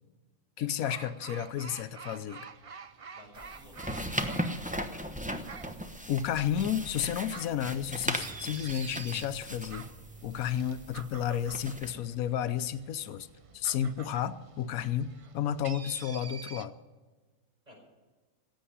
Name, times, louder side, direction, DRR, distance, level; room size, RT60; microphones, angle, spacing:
voice 1, 0.6-2.5 6.1-9.9 10.2-13.3 13.5-16.7, left 9 dB, 90° left, 12 dB, 1.2 m, -32 dB
sound 1, 0.8-16.7, right 5 dB, 55° right, 0.3 m, -48 dB
voice 2, 3.1-4.4 17.7-17.8, equal, 30° right, -2 dB, 6.1 m, -55 dB
sound 2, 3.4-11.9, equal, 5° right, 0.8 m, -38 dB
16.0 x 8.6 x 9.9 m, 1.3 s
omnidirectional pair, 1.4 m